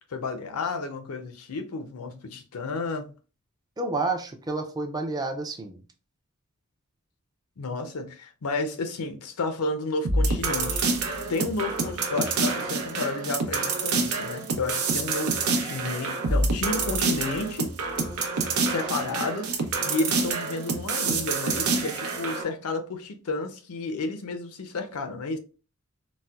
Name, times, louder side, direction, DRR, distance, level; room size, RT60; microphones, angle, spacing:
voice 1, 0.1-3.1 7.6-17.7 18.6-25.4, left 3 dB, 85° left, 0.5 m, -32 dB
voice 2, 3.8-5.8, right 3 dB, 20° right, 0.4 m, -29 dB
sound 1, 10.0-22.4, right 3 dB, 85° right, 0.7 m, -27 dB
4.1 x 2.1 x 2.3 m
head